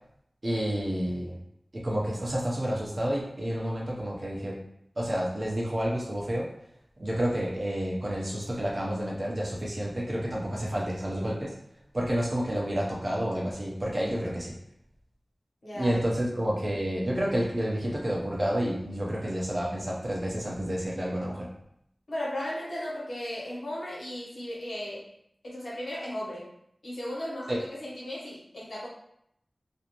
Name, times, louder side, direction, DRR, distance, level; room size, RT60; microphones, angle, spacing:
voice 1, 0.4-1.4 1.7-4.6 5.0-6.5 7.0-11.5 11.9-14.5 15.7-21.5 27.5-27.6, equal, 50° right, -4 dB, 0.7 m, -30 dB
voice 2, 15.6-16.2 22.1-25.1 25.4-26.5 26.8-28.9, left 1 dB, 75° left, -6 dB, 0.9 m, -36 dB
2.6 x 2.1 x 2.9 m, 0.75 s
wide cardioid pair, 50°, 0 cm